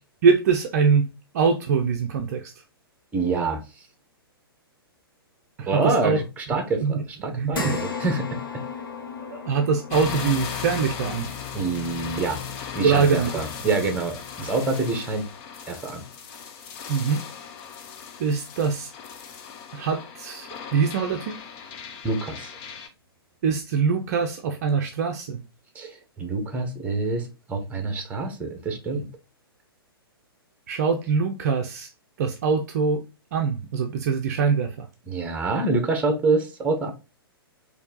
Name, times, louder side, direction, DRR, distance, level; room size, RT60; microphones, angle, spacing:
voice 1, 0.2-1.1 1.3-2.5 5.6-6.2 6.5-7.0 7.3-7.8 9.2-11.3 12.8-13.3 16.9-17.2 18.2-18.9 19.7-21.4 23.4-25.4 30.7-31.9 32.2-33.0 33.3-34.9, right 5 dB, 40° right, 0.6 m, -23 dB
voice 2, 3.1-3.6 5.7-8.6 11.5-12.4 12.7-15.3 15.7-16.0 22.0-22.5 25.7-29.1 35.1-36.9, right 3 dB, 10° right, 1.0 m, -26 dB
sound 1, 7.5-16.1 16.6-16.7 18.1-18.2, left 6 dB, 60° left, 1.3 m, -38 dB
sound 2, 9.9-22.9, left 7 dB, 30° left, 0.6 m, -37 dB
4.4 x 2.8 x 3.8 m
figure-of-eight pair, 115°, 13 cm